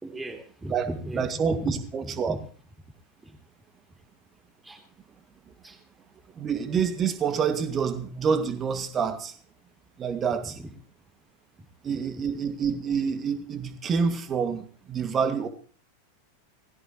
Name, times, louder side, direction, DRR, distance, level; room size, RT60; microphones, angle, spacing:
voice 1, 0.0-1.7 2.0-2.4 3.2-3.3 4.6-4.8 5.6-5.8 10.6-10.7, equal, 10° right, 3.5 m, -36 dB
voice 2, 1.1-2.4 6.3-9.3 10.0-10.6 11.8-15.5, right 6 dB, 25° right, 2.2 m, -27 dB
21.0 x 16.0 x 3.2 m
figure-of-eight pair, 90°, 0 cm